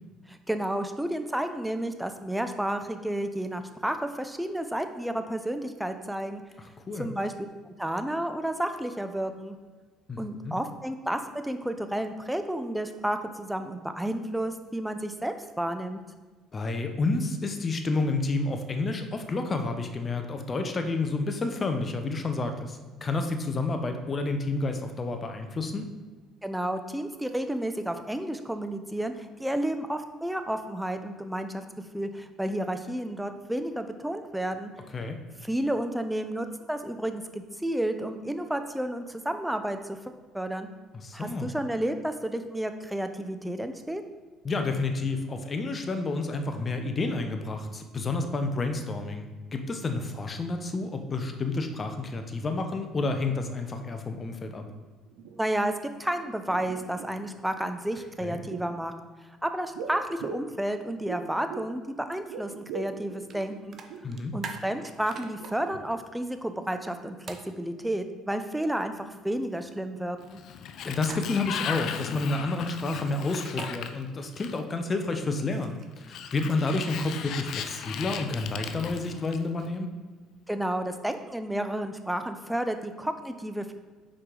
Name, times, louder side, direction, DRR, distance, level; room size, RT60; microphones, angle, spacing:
voice 1, 0.3-6.4 7.0-7.3 7.6-9.6 10.2-16.0 26.4-31.6 31.9-34.7 35.4-40.0 40.3-40.7 41.1-44.0 55.4-55.7 56.0-58.9 59.4-63.8 64.3-70.4 80.5-83.7, right 1 dB, 5° right, 8 dB, 0.7 m, -31 dB
voice 2, 10.1-10.5 16.5-25.8 34.9-35.2 41.0-41.5 44.4-54.6 58.2-58.4 64.0-64.4 70.8-79.9, left 3 dB, 35° left, 6 dB, 0.8 m, -30 dB
sound 1, 54.7-54.8 55.1-55.9 56.2-57.4 58.1-58.8 59.7-61.8 62.1-64.2 64.6-64.8 65.2-66.2 66.5-66.6, right 5 dB, 80° right, 0.5 m, -42 dB
sound 2, 63.3-63.4 63.7-65.5 67.3-67.5 71.0-71.6 73.3-73.7 75.1-76.0, right 6 dB, 50° right, 0.8 m, -42 dB
Sliding door, 70.2-74.8 76.0-79.7, left 8 dB, 60° left, 0.4 m, -37 dB
6.2 x 4.8 x 3.9 m, 1.3 s
hypercardioid pair, 65°, 0 cm